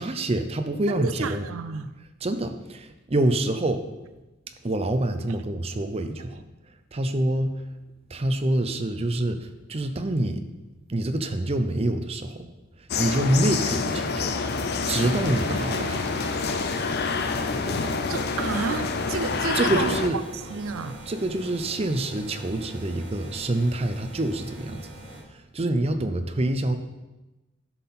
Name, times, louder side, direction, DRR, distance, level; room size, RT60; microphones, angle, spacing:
voice 1, 0.0-1.5 2.2-3.8 4.6-6.4 6.9-7.6 8.1-10.4 10.9-12.5 12.8-14.3 14.9-16.0 19.5-20.2 21.1-24.9 25.3-26.8, right 1 dB, 30° right, 8 dB, 0.6 m, -26 dB
voice 2, 0.9-2.0 17.6-17.8 18.1-20.0 20.5-21.0, right 5 dB, 80° right, 12 dB, 0.5 m, -31 dB
sound 1, 12.9-20.1, left 4 dB, 50° left, 0.6 m, -27 dB
sound 2, 14.9-25.2, right 1 dB, 65° right, 3.0 m, -41 dB
12.0 x 5.8 x 4.3 m, 1.0 s
head